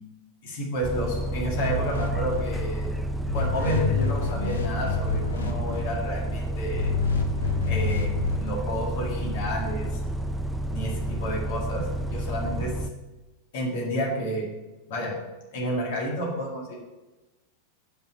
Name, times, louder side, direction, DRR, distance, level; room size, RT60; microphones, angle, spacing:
voice 1, 0.4-2.9 3.3-6.9 7.7-9.8 10.7-11.8 12.1-12.9 13.5-14.4 14.9-15.1 15.5-16.8, equal, 55° left, -3 dB, 2.2 m, -30 dB
Bus, 0.8-12.9, right 1 dB, 10° right, 0.4 m, -30 dB
sound 1, 1.5-2.9 3.3-6.1 6.7-8.4, left 4 dB, 75° left, 1.1 m, -29 dB
6.7 x 6.4 x 6.5 m, 1.1 s
figure-of-eight pair, 90°, 0 cm